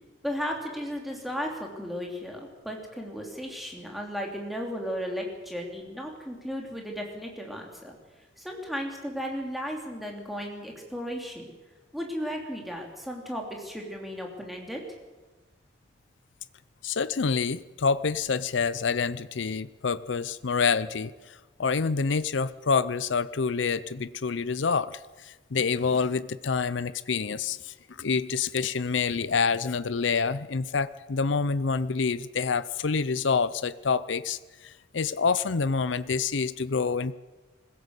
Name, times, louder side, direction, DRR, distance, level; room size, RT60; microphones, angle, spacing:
voice 1, 0.2-7.9 8.4-11.5 11.9-14.8, equal, ahead, 0 dB, 3.1 m, -35 dB
voice 2, 16.8-37.1, left 5 dB, 75° left, 16 dB, 0.6 m, -27 dB
21.0 x 16.5 x 8.2 m, 1.2 s
head